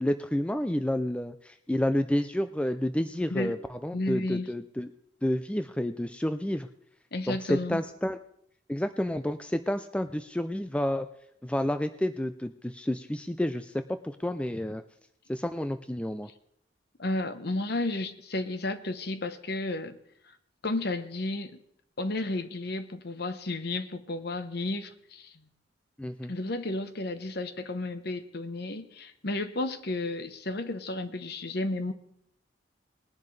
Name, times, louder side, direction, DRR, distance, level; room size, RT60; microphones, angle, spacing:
voice 1, 0.0-4.9 5.2-6.7 7.3-8.2 8.7-11.1 11.4-14.8 15.3-16.3 26.0-26.3, left 1 dB, 5° left, 9 dB, 0.4 m, -30 dB
voice 2, 3.9-4.5 7.1-7.8 17.0-20.0 20.6-21.6 22.0-25.3 26.3-31.9, left 2 dB, 55° left, 10 dB, 1.0 m, -32 dB
20.5 x 10.5 x 3.3 m, 0.72 s
head